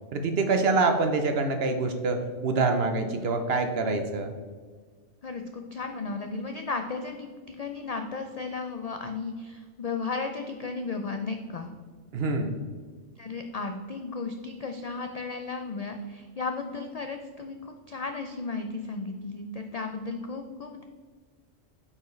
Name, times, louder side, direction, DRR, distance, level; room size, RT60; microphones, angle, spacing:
voice 1, 0.1-4.3 12.1-12.6, right 3 dB, 60° right, 6 dB, 0.8 m, -26 dB
voice 2, 5.2-11.7 13.2-20.8, left 4 dB, 80° left, 5 dB, 0.3 m, -34 dB
8.6 x 4.7 x 3.1 m, 1.5 s
omnidirectional pair, 1.3 m